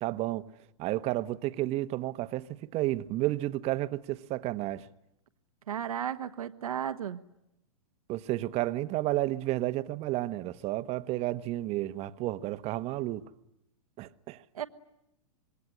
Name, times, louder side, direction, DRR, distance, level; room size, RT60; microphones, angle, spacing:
voice 1, 0.0-0.5 0.8-4.8 8.1-13.2 14.0-14.4, right 16 dB, 35° right, 1.2 m, -31 dB
voice 2, 5.7-7.2 14.5-14.6, right 9 dB, 75° right, 1.4 m, -34 dB
27.0 x 22.0 x 10.0 m
hypercardioid pair, 115°, 19 cm